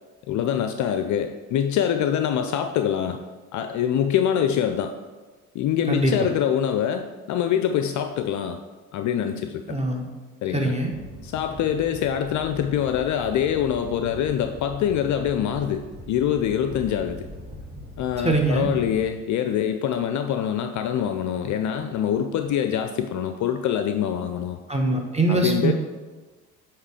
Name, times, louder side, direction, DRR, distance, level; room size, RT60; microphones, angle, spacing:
voice 1, 0.3-3.2 3.5-4.9 5.5-8.6 8.9-9.8 10.4-10.7 11.2-17.3 18.0-24.6 25.3-25.7, left 9 dB, 45° left, 7 dB, 0.5 m, -24 dB
voice 2, 9.7-10.1 10.5-10.9 18.2-18.7 24.7-25.7, right 2 dB, 15° right, 2 dB, 1.2 m, -22 dB
Animal, 10.9-19.0, left 1 dB, 55° right, 1.9 m, -41 dB
8.0 x 3.1 x 4.9 m, 1.3 s
hypercardioid pair, 55°, 42 cm